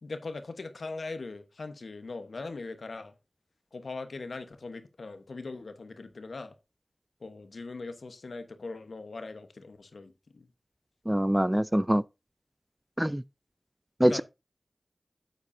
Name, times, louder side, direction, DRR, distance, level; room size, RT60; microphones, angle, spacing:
voice 1, 0.0-3.1 3.7-6.5 7.2-10.5 14.0-14.2, left 3 dB, 85° left, 1.1 m, -40 dB
voice 2, 11.1-12.0 13.0-13.2 14.0-14.2, equal, 10° right, 0.3 m, -24 dB
8.5 x 8.2 x 2.7 m
wide cardioid pair, 55°, 0 cm